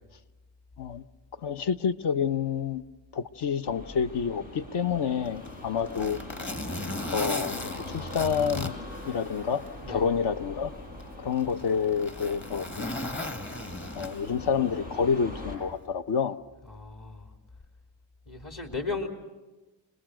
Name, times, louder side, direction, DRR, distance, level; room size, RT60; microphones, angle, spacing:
voice 1, 1.4-2.8 3.1-6.2 7.1-8.8 9.0-9.6 9.9-10.7 11.2-12.9 13.9-16.4, left 6 dB, 60° left, 10 dB, 1.1 m, -28 dB
sound 1, 3.6-15.6, left 1 dB, 75° left, 7.1 m, -41 dB
Zipper (clothing), 5.3-9.7 10.1-10.2 11.0-14.5 15.6-15.8, left 2 dB, 25° left, 1.7 m, -37 dB
voice 2, 16.7-17.3 18.3-19.1, left 3 dB, 40° left, 3 dB, 3.1 m, -35 dB
29.5 x 20.0 x 6.4 m, 1.1 s
cardioid pair, 75°, 46 cm